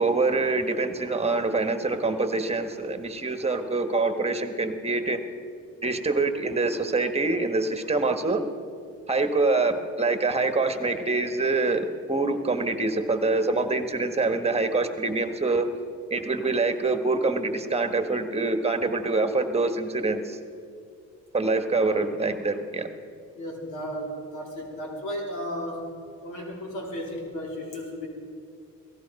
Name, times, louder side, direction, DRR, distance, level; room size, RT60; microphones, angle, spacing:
voice 1, 0.0-5.2 5.8-8.4 9.1-15.7 16.1-20.4 21.3-22.9, right 3 dB, 20° right, 8 dB, 1.3 m, -25 dB
voice 2, 23.3-26.0 26.2-28.1, equal, 90° left, 0 dB, 3.4 m, -34 dB
17.5 x 15.0 x 5.3 m, 2.4 s
cardioid pair, 90°, 30 cm